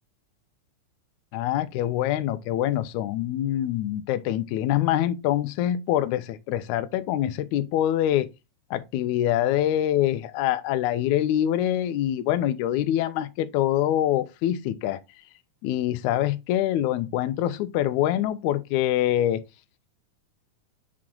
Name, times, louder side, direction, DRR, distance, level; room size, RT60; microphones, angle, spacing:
voice 1, 1.3-8.3 8.7-15.0 15.6-19.4, left 12 dB, 80° left, 1.9 m, -25 dB
7.6 x 4.8 x 3.8 m
omnidirectional pair, 3.6 m